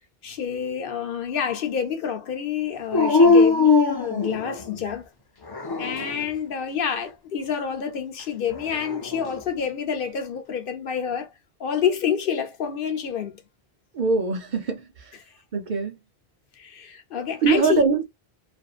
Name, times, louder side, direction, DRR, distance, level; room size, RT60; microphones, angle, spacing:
voice 1, 0.2-5.1 5.8-11.3 11.6-13.4 15.1-15.2 16.6-17.8, left 7 dB, 65° left, 0.8 m, -28 dB
Dog, 2.9-4.8 5.5-6.3 8.5-9.4, left 4 dB, 40° left, 0.3 m, -20 dB
voice 2, 13.9-15.2 15.5-16.0 17.4-18.0, right 5 dB, 55° right, 0.7 m, -23 dB
2.5 x 2.5 x 2.3 m
omnidirectional pair, 1.1 m